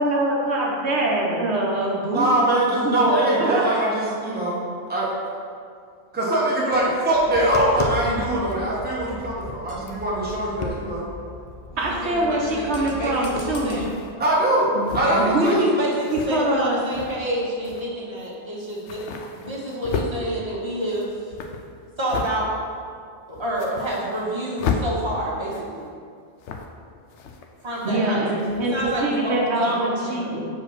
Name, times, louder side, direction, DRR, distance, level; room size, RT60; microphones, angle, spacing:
voice 1, 0.0-2.3 2.8-3.0 3.4-3.6 11.8-13.8 14.7-15.7 16.1-16.8 27.8-30.4, right 1 dB, 65° right, -2 dB, 1.1 m, -24 dB
voice 2, 2.1-4.6 4.9-5.1 6.1-11.1 14.2-15.6, right 1 dB, 10° right, -5 dB, 0.9 m, -22 dB
Tap, 7.1-13.8, left 3 dB, 45° left, 0.4 m, -34 dB
voice 3, 11.7-13.9 15.0-19.0 19.4-21.3 22.0-22.5 23.3-25.9 27.6-30.5, right 1 dB, 25° right, -5 dB, 1.2 m, -28 dB
sound 1, 12.4-12.5 13.3-14.1 14.8-15.3 15.9-16.3 16.8-17.3 17.6-17.9 18.2-18.3 18.6-20.1 20.7-22.4 22.8-22.9 23.3-24.3 24.6-24.9 25.4-25.9 26.4-26.8 27.1-28.0 28.4-29.0, left 6 dB, 80° left, 0.9 m, -33 dB
4.9 x 4.2 x 5.8 m, 2.2 s
omnidirectional pair, 1.2 m